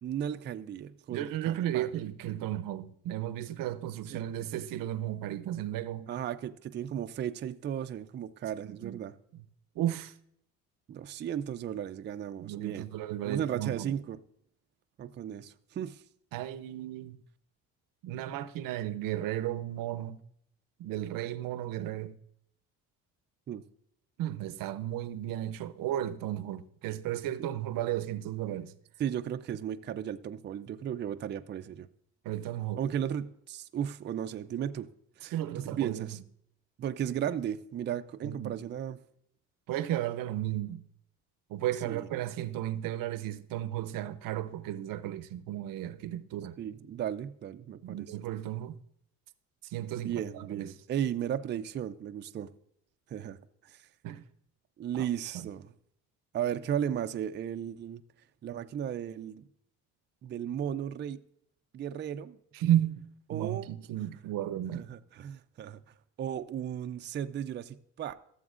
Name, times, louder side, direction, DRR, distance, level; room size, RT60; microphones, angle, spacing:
voice 1, 0.0-1.9 4.1-4.3 6.1-9.1 10.9-12.9 13.2-14.2 15.0-16.0 23.5-23.6 29.0-31.9 32.8-34.9 35.2-36.2 36.8-39.0 41.9-42.1 46.6-48.1 50.0-52.5 53.1-53.9 54.8-55.7 56.3-58.0 58.4-59.4 60.2-61.2 61.7-62.4 63.3-63.7 64.7-65.8 66.2-68.1, right 9 dB, 30° right, 0.4 m, -35 dB
voice 2, 1.1-6.1 8.6-9.0 9.8-10.1 12.4-13.9 16.3-17.2 18.0-20.2 20.8-22.1 24.2-28.7 32.2-32.8 35.3-36.1 38.2-38.6 39.7-40.8 41.5-46.6 47.8-48.8 49.6-50.7 54.0-54.2 54.9-55.1 55.3-55.5 62.5-63.0 63.3-64.9, right 12 dB, 70° right, 0.7 m, -34 dB
14.5 x 7.0 x 2.5 m
cardioid pair, 100°, 35 cm